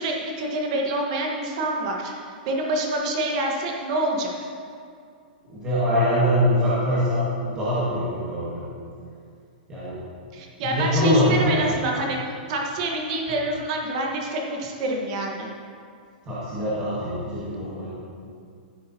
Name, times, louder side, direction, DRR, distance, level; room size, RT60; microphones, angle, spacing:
voice 1, 0.0-2.1 2.5-4.3 10.3-12.2 12.5-15.5, right 2 dB, 35° right, 0 dB, 1.3 m, -27 dB
voice 2, 5.5-8.7 9.7-10.0 10.6-11.6 13.3-13.4 16.3-17.9, equal, 15° right, -11 dB, 1.7 m, -23 dB
14.0 x 8.5 x 2.8 m, 2.3 s
hypercardioid pair, 170°, 5 cm